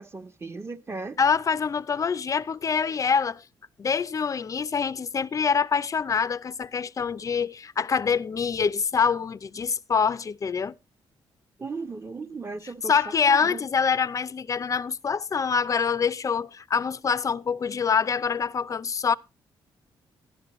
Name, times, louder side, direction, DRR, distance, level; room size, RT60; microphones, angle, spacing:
voice 1, 0.0-1.2 11.6-13.7, right 3 dB, 30° right, 1.0 m, -36 dB
voice 2, 1.2-3.4 3.8-10.7 12.9-19.1, left 6 dB, 40° left, 0.5 m, -25 dB
13.0 x 10.5 x 3.0 m
cardioid pair, 85°, 9 cm